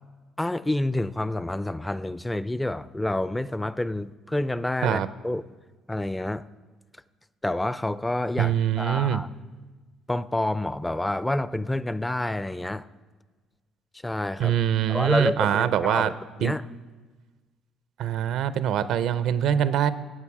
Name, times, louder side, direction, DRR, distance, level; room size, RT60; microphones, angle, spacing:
voice 1, 0.4-5.4 5.9-6.5 7.4-9.3 10.1-12.9 14.0-14.5 14.9-16.1 16.4-16.6, left 1 dB, 10° left, 16 dB, 0.4 m, -28 dB
voice 2, 8.4-9.2 14.4-16.1 16.4-16.5 18.0-19.9, right 10 dB, 75° right, 14 dB, 0.5 m, -23 dB
15.5 x 8.5 x 4.8 m, 1.3 s
cardioid pair, 95°, 0 cm